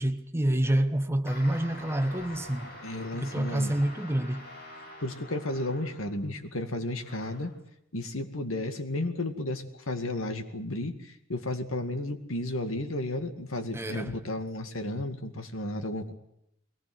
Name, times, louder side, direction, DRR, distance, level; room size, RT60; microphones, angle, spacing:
voice 1, 0.0-2.7 3.1-4.5 13.7-14.2, right 1 dB, 10° right, 1.1 m, -28 dB
sound 1, 1.3-6.3 7.0-7.6, left 1 dB, 50° left, 6.1 m, -46 dB
voice 2, 2.8-3.7 5.0-7.5 7.9-10.9 11.3-16.1, left 1 dB, 90° left, 2.2 m, -33 dB
22.0 x 19.0 x 7.9 m
head